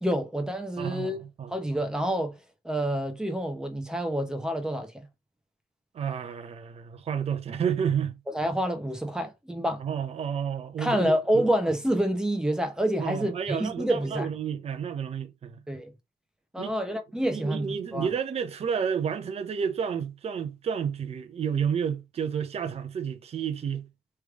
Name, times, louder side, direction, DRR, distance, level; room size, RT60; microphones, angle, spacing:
voice 1, 0.0-1.2 1.5-2.4 2.6-5.1 8.3-9.8 10.8-14.3 15.7-15.9 16.5-18.1, equal, 5° right, 1.0 m, -28 dB
voice 2, 0.8-1.5 5.9-8.2 9.8-11.2 13.0-15.6 16.6-16.8 17.3-23.9, right 7 dB, 35° right, 0.8 m, -30 dB
3.4 x 3.1 x 4.8 m
cardioid pair, 110°, 17 cm